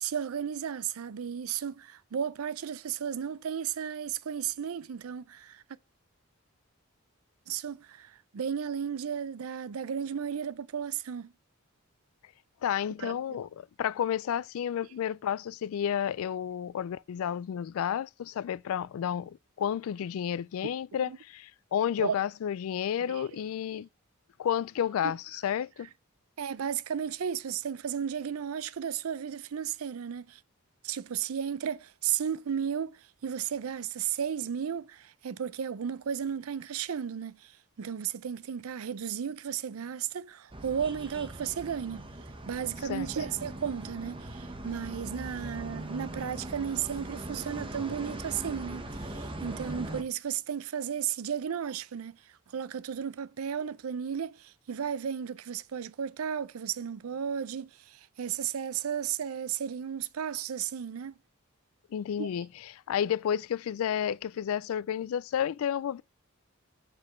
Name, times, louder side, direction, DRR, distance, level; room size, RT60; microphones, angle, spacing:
voice 1, 0.0-5.6 7.5-11.3 13.0-13.2 21.1-21.2 22.0-22.2 23.1-23.2 25.0-25.1 26.4-30.4 30.8-37.5 37.8-42.1 42.4-52.2 52.5-61.1 62.2-62.3, right 8 dB, 80° right, 0.5 m, -34 dB
voice 2, 12.6-23.9 24.4-25.9 42.9-43.1 61.9-66.0, left 9 dB, 75° left, 0.3 m, -31 dB
sound 1, 40.5-50.0, right 1 dB, 25° right, 1.1 m, -40 dB
7.4 x 6.2 x 3.1 m
head